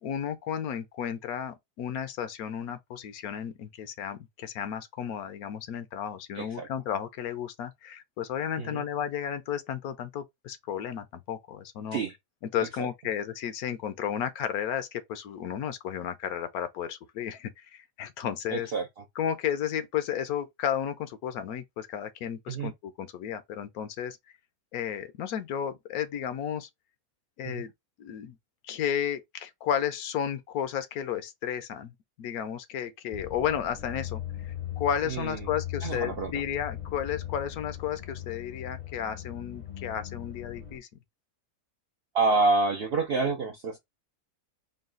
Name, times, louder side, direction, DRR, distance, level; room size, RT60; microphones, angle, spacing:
voice 1, 0.0-12.0 12.4-18.7 19.2-24.2 24.7-26.7 27.4-27.7 28.0-28.4 28.6-31.9 32.2-40.9, left 9 dB, 70° left, 1.0 m, -33 dB
voice 2, 6.4-6.7 8.6-8.8 11.9-12.1 12.8-12.9 18.5-18.9 22.5-22.7 27.5-27.6 35.1-35.4 35.8-36.3 42.1-43.8, right 3 dB, 65° right, 0.6 m, -27 dB
sound 1, 33.1-40.8, left 11 dB, 40° left, 0.6 m, -39 dB
3.9 x 2.3 x 3.7 m
omnidirectional pair, 1.7 m